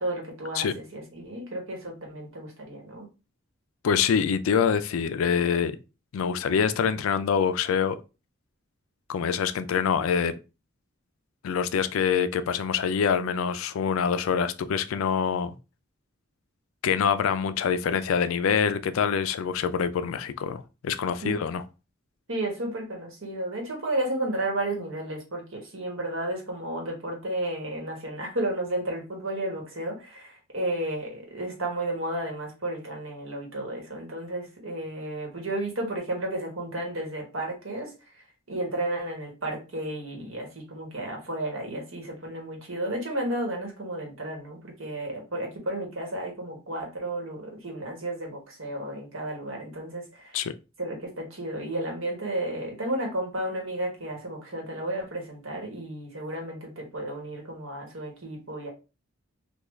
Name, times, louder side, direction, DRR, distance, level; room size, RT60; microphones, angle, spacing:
voice 1, 0.0-3.1 21.2-21.4 22.3-50.4 50.8-58.7, right 1 dB, 65° right, 1.2 m, -33 dB
voice 2, 3.8-5.8 6.1-8.0 9.1-10.3 11.4-15.5 16.8-21.6 50.3-50.5, left 7 dB, 70° left, 0.3 m, -25 dB
3.5 x 2.3 x 3.1 m
head